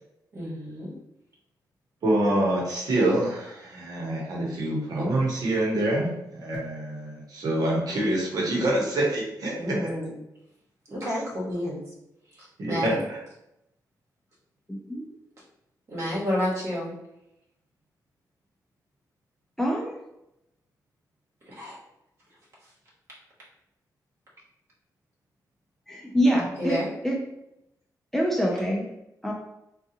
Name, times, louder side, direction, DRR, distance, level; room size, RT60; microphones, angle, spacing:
voice 1, 0.3-0.9 9.5-10.1 10.9-11.8 12.3-13.0 15.9-16.9 21.4-21.8 26.6-26.9, left 1 dB, 45° right, -6 dB, 1.4 m, -30 dB
voice 2, 2.0-9.5 12.6-12.9, right 1 dB, 60° right, -3 dB, 1.0 m, -26 dB
voice 3, 14.7-15.0 19.6-19.9 25.9-26.8 27.0-27.2 28.1-28.9 29.2-29.3, equal, 5° left, -1 dB, 0.4 m, -25 dB
3.6 x 2.3 x 2.8 m, 0.85 s
wide cardioid pair, 130°, 7 cm